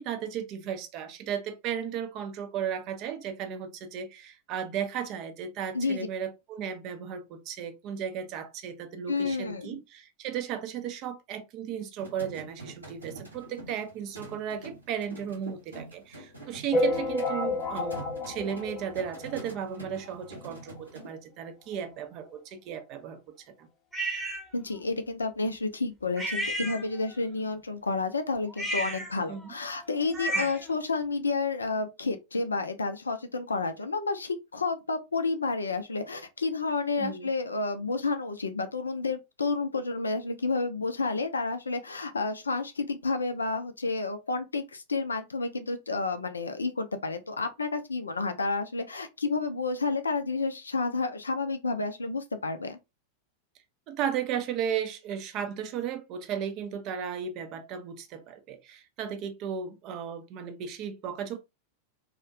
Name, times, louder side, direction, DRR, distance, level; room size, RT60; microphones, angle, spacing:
voice 1, 0.0-18.0 18.3-23.2 23.6-23.7 29.3-29.5 30.3-30.5 37.0-37.3 53.9-61.4, right 8 dB, 40° right, 0.4 m, -35 dB
voice 2, 5.7-6.1 9.1-9.8 24.5-52.8, left 3 dB, 75° left, 0.3 m, -30 dB
sound 1, 12.0-21.1, right 2 dB, 80° right, 0.8 m, -46 dB
sound 2, 16.7-19.6 20.1-20.2 20.3-20.5 20.8-20.9 21.7-21.8 22.3-22.4, left 1 dB, 30° left, 0.6 m, -30 dB
sound 3, 23.9-24.4 26.2-27.2 28.5-30.7, right 1 dB, 5° right, 0.8 m, -33 dB
2.4 x 2.1 x 2.5 m
figure-of-eight pair, 90°, 0 cm